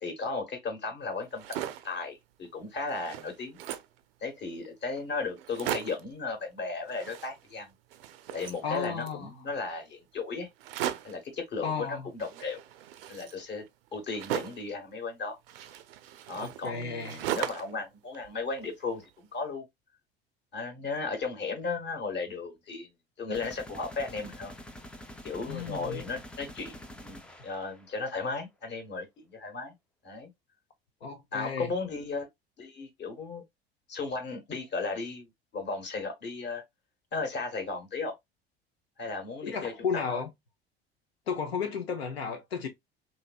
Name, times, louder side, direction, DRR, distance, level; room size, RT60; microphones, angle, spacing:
voice 1, 0.0-1.4 1.8-3.6 4.2-7.7 8.3-10.5 11.0-12.6 13.1-13.7 13.9-15.4 16.3-19.7 20.5-22.9 23.2-24.5 25.2-29.7 30.0-30.3 31.3-32.3 32.6-33.4 33.9-36.6 37.1-38.1 39.0-40.2, left 4 dB, 35° left, 1.1 m, -35 dB
sound 1, 1.2-2.0 2.4-2.5 2.8-4.0 4.6-4.7 5.0-5.1 5.4-6.1 6.9-7.6 7.9-9.2 10.6-11.3 12.2-14.7 15.5-17.8 18.1-19.1, right 11 dB, 65° right, 0.5 m, -38 dB
voice 2, 8.6-9.3 11.6-12.1 16.4-17.2 25.5-26.0 31.0-31.7 39.4-40.3 41.3-42.7, left 5 dB, 80° left, 0.6 m, -33 dB
sound 2, 23.3-28.1, equal, 5° left, 0.3 m, -46 dB
2.9 x 2.6 x 2.3 m
figure-of-eight pair, 65°, 31 cm